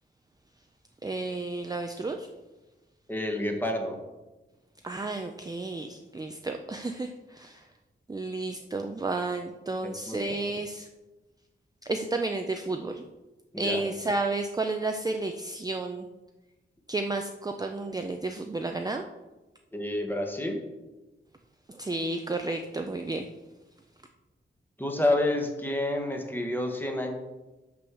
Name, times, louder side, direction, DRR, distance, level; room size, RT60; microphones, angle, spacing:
voice 1, 1.0-2.3 4.8-7.7 8.1-10.9 11.8-13.0 13.6-16.1 16.9-19.0 21.7-23.3, right 2 dB, 20° right, 4 dB, 0.4 m, -32 dB
voice 2, 3.1-4.0 10.1-10.4 13.5-13.8 19.7-20.6 24.8-27.1, left 1 dB, 10° left, 3 dB, 1.2 m, -29 dB
6.2 x 6.2 x 6.2 m, 1.1 s
wide cardioid pair, 145°, 20 cm